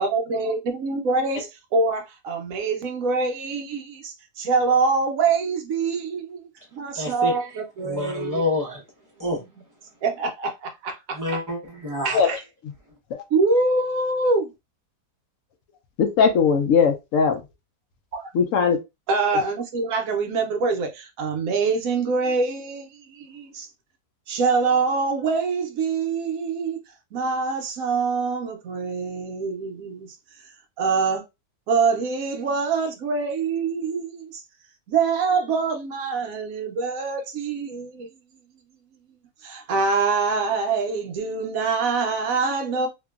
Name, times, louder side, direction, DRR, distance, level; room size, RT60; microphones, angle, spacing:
voice 1, 0.0-8.4 9.3-9.4 10.0-11.4 12.0-12.4 13.3-14.5 18.1-18.3 19.1-23.7 24.3-26.8 27.1-30.1 30.8-31.2 31.7-34.4 34.9-38.1 39.4-42.9, right 4 dB, 65° right, 0.9 m, -25 dB
voice 2, 6.9-7.4 7.8-8.8 9.2-9.4 11.1-12.2, left 2 dB, 25° right, 0.4 m, -27 dB
voice 3, 16.0-17.4 18.3-18.8, left 6 dB, 70° left, 0.8 m, -19 dB
2.9 x 2.6 x 2.3 m
omnidirectional pair, 1.8 m